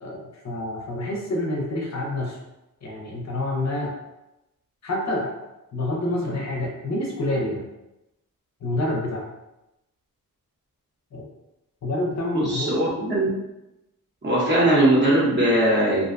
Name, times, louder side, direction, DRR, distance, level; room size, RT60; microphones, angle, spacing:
voice 1, 0.0-2.4 2.8-3.9 4.8-5.3 5.7-7.6 8.6-9.3 11.1-11.2 11.8-12.7, left 1 dB, 50° left, -1 dB, 0.5 m, -27 dB
voice 2, 12.3-13.3 14.2-16.1, right 1 dB, 30° right, -5 dB, 0.6 m, -20 dB
2.5 x 2.1 x 2.5 m, 0.93 s
wide cardioid pair, 155°, 36 cm